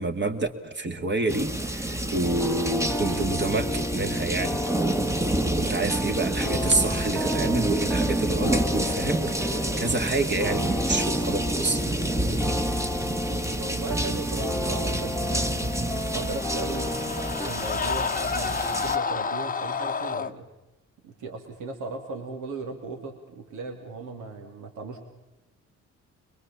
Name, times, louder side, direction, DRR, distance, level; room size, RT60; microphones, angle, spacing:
voice 1, 0.0-4.6 5.4-11.8, right 2 dB, 35° right, 6 dB, 2.3 m, -28 dB
sound 1, 1.3-19.0, right 1 dB, 10° right, 1.3 m, -29 dB
sound 2, 2.2-17.5, left 1 dB, 5° left, 1.3 m, -32 dB
voice 2, 12.1-12.5 13.1-15.7 16.1-20.5 21.0-25.0, right 3 dB, 85° right, 3 dB, 3.1 m, -37 dB
sound 3, 15.8-20.3, left 5 dB, 30° left, 0.9 m, -30 dB
23.5 x 22.0 x 7.1 m, 0.99 s
cardioid pair, 90°, 30 cm